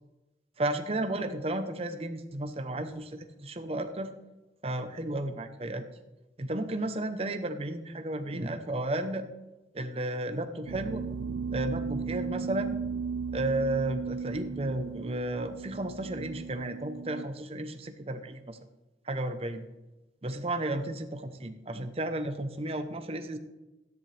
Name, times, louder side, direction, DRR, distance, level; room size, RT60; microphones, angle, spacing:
voice 1, 0.6-4.1 4.6-5.8 6.4-9.3 9.7-11.0 11.5-12.8 13.3-18.6 19.0-19.6 20.2-23.4, right 1 dB, 35° right, 8 dB, 0.8 m, -33 dB
sound 1, 10.7-17.2, right 5 dB, 75° right, 0.4 m, -36 dB
13.5 x 10.5 x 3.3 m, 1.0 s
head